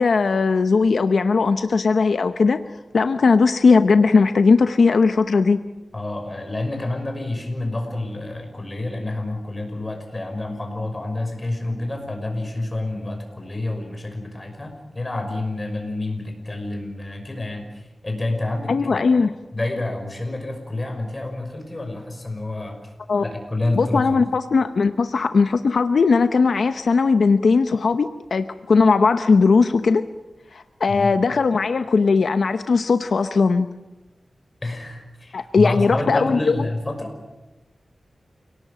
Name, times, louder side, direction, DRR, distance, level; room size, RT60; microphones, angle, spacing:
voice 1, 0.0-2.6 2.9-5.6 18.7-19.3 23.1-23.2 23.8-30.1 30.5-33.7 35.3-36.6, left 4 dB, 80° left, 9 dB, 0.8 m, -18 dB
voice 2, 5.9-19.1 19.5-22.9 23.2-24.2 30.9-31.1 34.6-37.1, left 2 dB, 25° left, 4 dB, 6.0 m, -28 dB
28.5 x 18.5 x 7.6 m, 1.1 s
wide cardioid pair, 115°, 0 cm